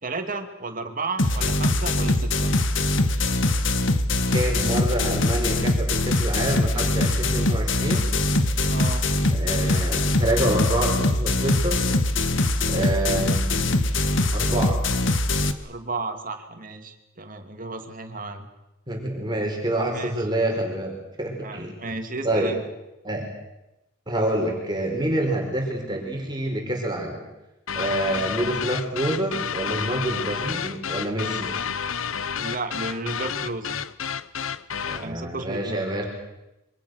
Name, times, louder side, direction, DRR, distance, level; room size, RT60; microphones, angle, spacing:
voice 1, 0.0-2.5 8.7-9.1 15.6-18.5 19.9-20.2 21.4-22.6 32.3-33.8 35.0-35.9, right 3 dB, 40° right, 6 dB, 2.7 m, -33 dB
sound 1, 1.2-15.5, left 2 dB, 65° left, 1.6 m, -22 dB
voice 2, 4.3-8.1 9.3-11.9 12.7-13.8 14.3-14.8 18.9-21.8 22.2-22.5 23.0-23.2 24.1-27.2 27.7-31.5 34.9-36.0, right 1 dB, 20° right, 1 dB, 4.6 m, -27 dB
sound 2, 27.7-35.1, left 7 dB, 85° left, 0.9 m, -30 dB
27.0 x 24.5 x 6.5 m, 0.95 s
head